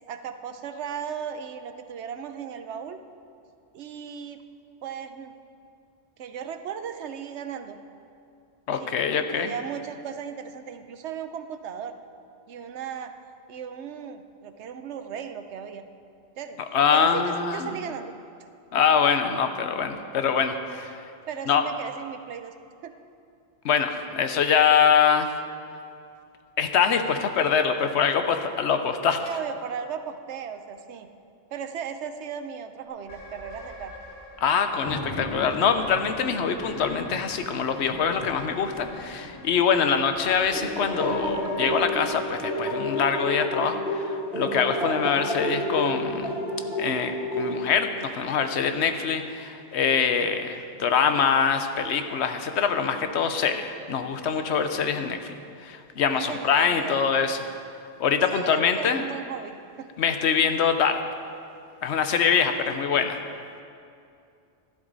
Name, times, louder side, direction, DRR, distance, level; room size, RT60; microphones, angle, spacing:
voice 1, 0.0-3.0 3.7-4.4 4.8-5.3 6.2-7.8 8.7-8.9 9.3-11.9 12.5-13.1 13.5-15.9 16.4-16.6 16.9-18.1 21.3-22.5 22.8-22.9 29.2-31.1 31.5-33.9 56.1-57.1 58.3-59.9 62.3-62.8, right 7 dB, 80° right, 9 dB, 1.0 m, -36 dB
voice 2, 8.7-9.5 16.7-17.7 18.7-20.9 21.5-21.6 23.6-25.3 26.6-29.2 34.4-46.3 46.8-55.4 55.6-57.4 58.0-59.0 60.0-61.0 61.8-63.2, left 7 dB, 80° left, 8 dB, 1.0 m, -24 dB
sound 1, 33.0-43.5, left 1 dB, 55° left, 3.2 m, -47 dB
Thunder, 34.7-42.4, left 1 dB, 25° left, 2.2 m, -41 dB
sound 2, 40.5-47.9, equal, 5° right, 3.0 m, -30 dB
12.0 x 11.0 x 4.0 m, 2.5 s
omnidirectional pair, 1.1 m